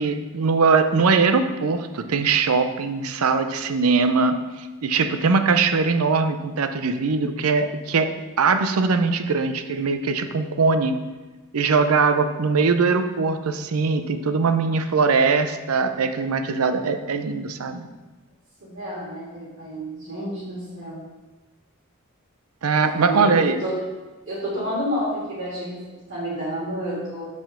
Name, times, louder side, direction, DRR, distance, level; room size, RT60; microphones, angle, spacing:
voice 1, 0.0-10.9 11.5-17.8 22.6-23.6, right 4 dB, 80° right, 9 dB, 0.6 m, -21 dB
voice 2, 18.6-21.0 22.8-23.8 24.3-25.8 26.1-27.3, equal, 60° right, -13 dB, 2.8 m, -29 dB
5.7 x 5.2 x 6.6 m, 1.2 s
head